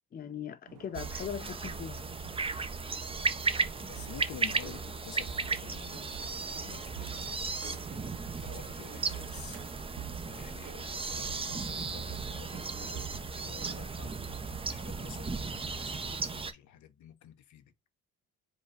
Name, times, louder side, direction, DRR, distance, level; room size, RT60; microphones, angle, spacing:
voice 1, 0.1-2.1, left 8 dB, 30° left, 0.5 m, -40 dB
sound 1, 0.7-14.7, right 15 dB, 90° right, 0.6 m, -48 dB
sound 2, 0.9-16.5, right 4 dB, 20° right, 0.5 m, -36 dB
voice 2, 3.8-8.1 8.4-9.6 10.2-14.1 14.7-17.7, left 10 dB, 70° left, 0.7 m, -50 dB
5.0 x 2.3 x 4.5 m
cardioid pair, 90°, 30 cm